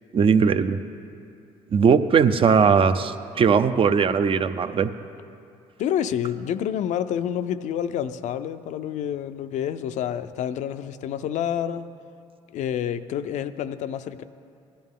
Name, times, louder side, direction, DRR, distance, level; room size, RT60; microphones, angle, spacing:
voice 1, 0.1-0.8 1.7-4.9, right 6 dB, 45° right, 10 dB, 0.6 m, -19 dB
voice 2, 5.8-11.9 12.5-14.2, left 9 dB, 70° left, 11 dB, 0.5 m, -28 dB
16.5 x 11.5 x 3.7 m, 2.5 s
supercardioid pair, 80°, 13 cm